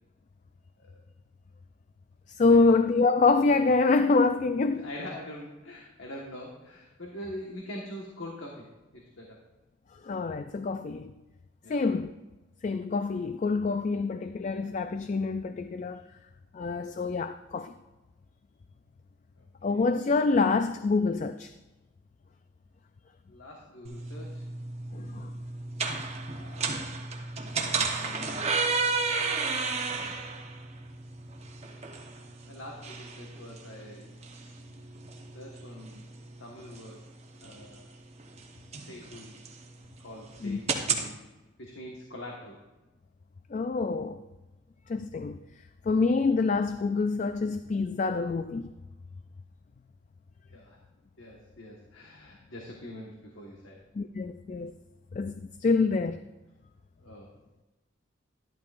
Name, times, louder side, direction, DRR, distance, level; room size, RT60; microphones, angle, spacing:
voice 1, 2.3-4.9 10.0-11.1 11.7-12.1 12.6-16.0 16.5-17.7 19.6-21.5 24.9-25.3 40.4-40.6 43.5-44.2 44.9-45.4 45.8-48.7 54.0-54.7 55.1-56.2, left 3 dB, 40° left, 0.3 m, -26 dB
voice 2, 4.7-8.7 8.9-9.4 11.6-11.8 19.4-19.9 23.3-24.5 26.2-26.8 32.2-34.1 35.3-36.0 36.4-37.0 37.4-37.9 38.8-39.4 40.0-41.2 41.6-42.6 50.5-50.8 51.2-53.8 57.0-57.3, left 1 dB, 90° left, 1.5 m, -44 dB
sound 1, 23.8-41.1, right 4 dB, 35° right, 1.0 m, -34 dB
12.5 x 11.5 x 2.5 m
head